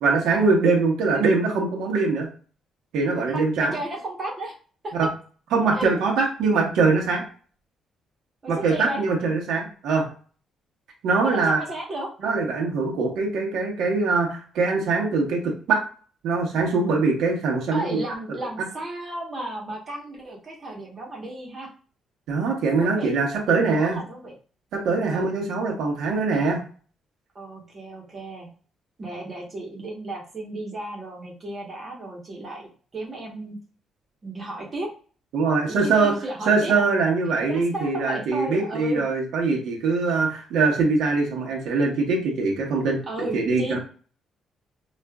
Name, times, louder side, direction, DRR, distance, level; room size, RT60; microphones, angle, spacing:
voice 1, 0.0-2.3 2.9-3.7 4.9-5.1 5.5-7.2 8.5-10.1 11.0-11.6 12.2-15.8 16.2-18.0 22.3-24.0 24.7-26.6 35.3-36.1 36.5-43.8, right 4 dB, 85° right, 0 dB, 1.0 m, -22 dB
voice 2, 3.1-4.5 4.8-4.9 5.8-5.9 8.4-9.0 11.2-12.1 17.7-21.7 22.8-23.1 23.8-24.4 25.1-25.4 27.3-28.5 29.0-33.6 34.2-34.9 35.7-36.7 37.5-39.0 43.1-43.8, right 1 dB, 25° right, -1 dB, 1.0 m, -34 dB
5.0 x 2.5 x 2.2 m, 0.40 s
cardioid pair, 175°, 0 cm